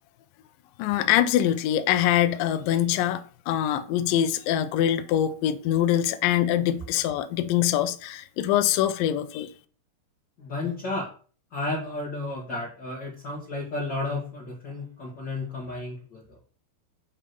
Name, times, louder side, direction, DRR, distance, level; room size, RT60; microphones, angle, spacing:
voice 1, 0.8-9.5, left 11 dB, 75° left, 2.2 m, -24 dB
voice 2, 10.4-11.1 11.5-16.4, left 2 dB, 45° left, 1.4 m, -32 dB
8.5 x 3.7 x 6.8 m
omnidirectional pair, 4.5 m